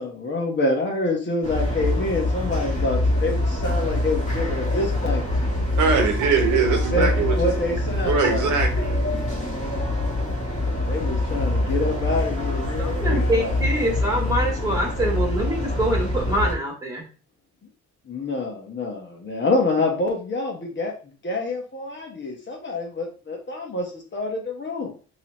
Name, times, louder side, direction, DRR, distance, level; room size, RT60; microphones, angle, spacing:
voice 1, 0.0-5.2 6.5-8.5 10.7-13.6 18.1-20.9 21.2-24.9, left 2 dB, 40° left, 1.3 m, -27 dB
sound 1, 1.4-16.5, left 1 dB, 25° left, 1.7 m, -24 dB
voice 2, 5.8-7.4 8.0-9.0, right 5 dB, 80° right, 1.0 m, -22 dB
voice 3, 12.8-17.1, right 1 dB, 15° right, 1.9 m, -25 dB
3.7 x 3.1 x 3.0 m
cardioid pair, 90°, 30 cm